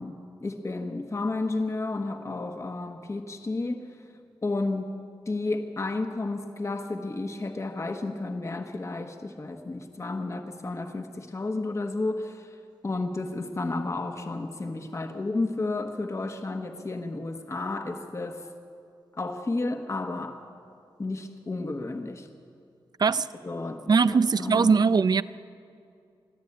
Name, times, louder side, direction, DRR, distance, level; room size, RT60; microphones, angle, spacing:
voice 1, 0.0-3.9 4.4-4.9 5.3-12.6 12.8-18.4 19.1-20.4 21.0-22.3 23.4-24.7, left 2 dB, 35° left, 5 dB, 1.3 m, -32 dB
voice 2, 23.9-25.2, right 5 dB, 50° right, 15 dB, 0.5 m, -21 dB
22.0 x 14.0 x 8.6 m, 2.4 s
wide cardioid pair, 90°, 9 cm